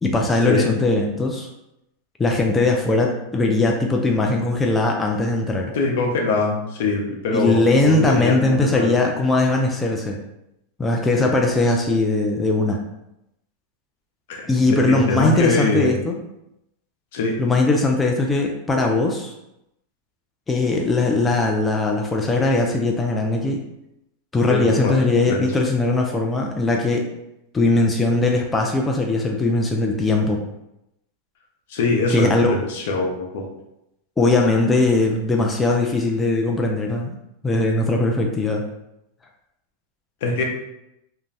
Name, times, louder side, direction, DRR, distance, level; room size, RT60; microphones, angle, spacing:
voice 1, 0.0-1.5 2.2-5.7 7.3-10.2 10.8-12.8 14.5-16.2 17.4-19.3 20.5-23.6 24.3-27.1 27.5-30.4 32.1-32.5 34.2-37.2 37.4-38.6, left 2 dB, 15° left, 1 dB, 0.4 m, -20 dB
voice 2, 5.7-8.9 11.2-11.4 14.3-16.0 17.1-17.4 24.5-25.0 25.3-25.5 31.7-33.5 40.2-40.4, left 3 dB, 70° left, 0 dB, 0.7 m, -23 dB
2.5 x 2.2 x 3.2 m, 0.85 s
hypercardioid pair, 115°, 0 cm